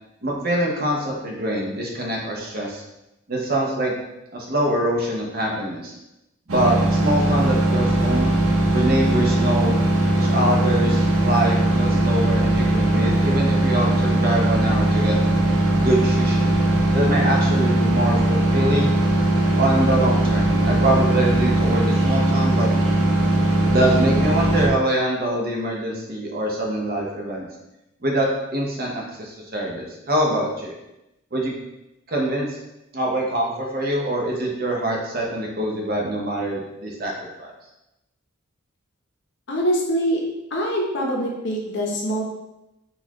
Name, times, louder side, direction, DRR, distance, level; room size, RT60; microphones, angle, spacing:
voice 1, 0.2-2.8 3.3-3.9 4.3-6.0 6.5-8.3 8.7-9.8 10.1-15.2 15.8-16.5 16.9-18.9 19.6-22.7 23.6-27.5 28.0-30.7 31.3-31.5 32.1-32.6 32.9-37.1 37.4-37.5, right 1 dB, 45° right, -1 dB, 0.7 m, -24 dB
sound 1, 6.5-24.7, right 1 dB, 85° right, 0.7 m, -19 dB
voice 2, 39.5-40.2 40.5-42.3, equal, 60° left, -1 dB, 0.7 m, -24 dB
4.1 x 2.3 x 2.8 m, 0.92 s
head